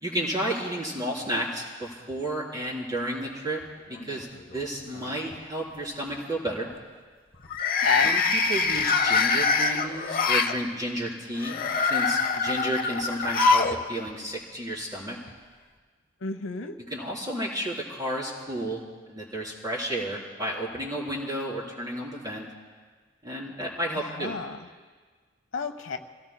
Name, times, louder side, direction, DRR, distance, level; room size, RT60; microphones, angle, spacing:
voice 1, 0.0-3.6 4.0-6.7 8.0-15.2 16.9-18.8 19.1-22.5 23.2-24.4, right 1 dB, 20° right, -5 dB, 3.7 m, -32 dB
sound 1, 3.9-4.6 4.9-5.3 7.4-10.5 11.4-13.8 14.1-14.2 15.3-15.4, left 4 dB, 50° left, 0.8 m, -24 dB
voice 2, 7.8-8.1 16.2-16.7 24.1-24.6 25.5-26.0, left 4 dB, 75° left, 6 dB, 0.9 m, -29 dB
28.5 x 17.5 x 2.2 m, 1.5 s
head